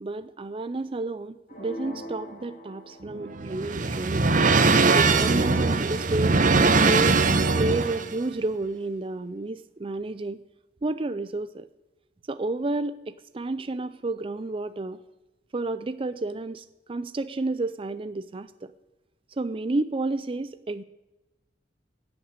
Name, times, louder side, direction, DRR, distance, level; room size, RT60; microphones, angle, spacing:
voice 1, 0.0-4.3 4.9-6.4 6.8-7.2 7.5-10.4 10.8-11.6 12.3-15.0 15.5-18.5 19.4-20.8, right 2 dB, 30° right, 12 dB, 0.5 m, -30 dB
sound 1, 1.5-3.6, equal, 50° left, 2.6 m, -41 dB
sound 2, 3.0-8.1, right 3 dB, 50° right, 0.9 m, -21 dB
11.5 x 8.6 x 9.6 m, 1.0 s
head